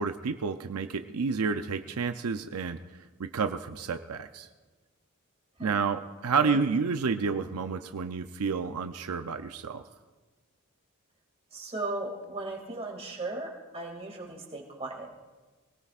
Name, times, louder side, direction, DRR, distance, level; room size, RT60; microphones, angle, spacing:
voice 1, 0.0-2.8 3.2-4.5 5.6-9.8, right 5 dB, 85° right, 8 dB, 0.6 m, -30 dB
voice 2, 11.5-13.5 13.7-15.2, right 2 dB, 25° right, 0 dB, 2.3 m, -36 dB
24.0 x 18.0 x 2.5 m, 1.3 s
head